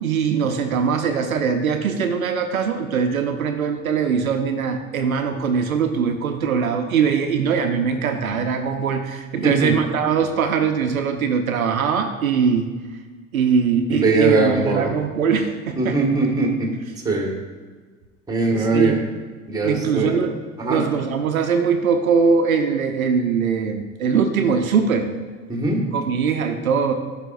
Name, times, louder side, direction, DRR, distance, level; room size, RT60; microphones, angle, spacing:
voice 1, 0.0-12.7 13.3-16.0 18.5-19.0 19.6-20.4 20.7-25.1 25.9-26.9, right 6 dB, 80° right, 6 dB, 0.7 m, -21 dB
voice 2, 9.4-9.7 13.9-14.9 15.7-16.7 17.0-17.3 18.3-19.0 19.5-20.3 20.6-20.8 25.5-25.8, right 2 dB, 10° right, 1 dB, 1.5 m, -21 dB
12.5 x 5.0 x 2.5 m, 1.4 s
figure-of-eight pair, 80°, 41 cm